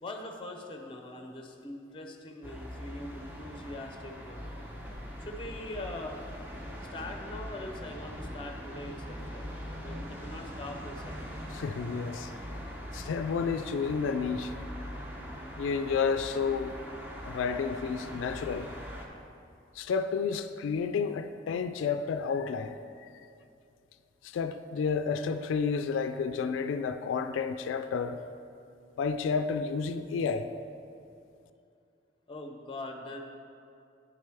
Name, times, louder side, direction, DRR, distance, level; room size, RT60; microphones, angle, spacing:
voice 1, 0.0-4.5 5.2-6.2 6.9-9.5 9.8-11.4 32.3-33.2, left 2 dB, 25° left, 0.6 m, -42 dB
sound 1, 2.4-19.1, equal, 10° right, 0.6 m, -42 dB
voice 2, 11.5-12.3 12.9-14.5 15.6-16.8 17.2-18.7 19.8-22.8 24.2-28.2 29.0-30.5, left 5 dB, 90° left, 0.3 m, -31 dB
9.4 x 6.4 x 3.4 m
head